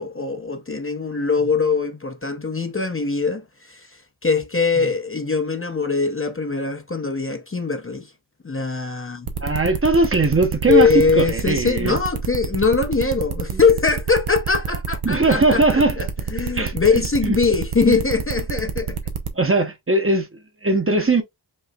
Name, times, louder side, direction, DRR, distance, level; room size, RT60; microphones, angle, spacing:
voice 1, 0.0-3.4 3.7-3.9 4.2-8.1 8.4-9.3 10.7-16.1 16.3-19.0, left 4 dB, 25° left, 0.7 m, -21 dB
sound 1, 9.3-19.3, right 6 dB, 80° right, 0.9 m, -27 dB
voice 2, 9.4-10.9 11.2-12.0 13.5-13.6 15.0-16.0 16.5-17.4 17.9-18.0 19.3-21.2, right 2 dB, 25° right, 0.9 m, -20 dB
5.4 x 3.0 x 2.3 m
wide cardioid pair, 60°, 48 cm